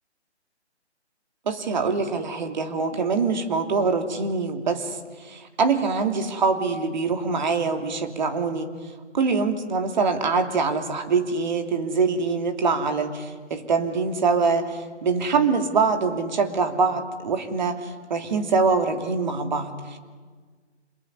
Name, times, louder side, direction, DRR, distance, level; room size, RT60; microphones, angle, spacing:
voice 1, 1.5-8.7 9.1-20.0, right 4 dB, 40° right, 5 dB, 3.0 m, -24 dB
27.0 x 20.5 x 9.7 m, 1.5 s
figure-of-eight pair, 155°, 35 cm